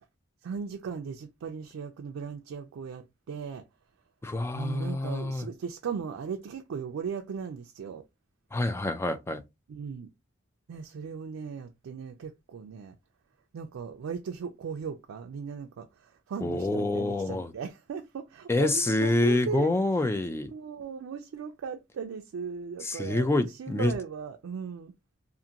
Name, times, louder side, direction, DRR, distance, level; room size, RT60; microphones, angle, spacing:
voice 1, 0.4-3.6 4.5-8.0 9.7-10.1 10.7-13.0 13.5-19.7 20.5-24.9, right 6 dB, 85° right, 0.3 m, -37 dB
voice 2, 4.2-5.5 8.5-9.4 16.4-17.5 18.5-20.5 22.8-23.9, left 2 dB, 15° left, 0.3 m, -27 dB
2.5 x 2.5 x 2.8 m
head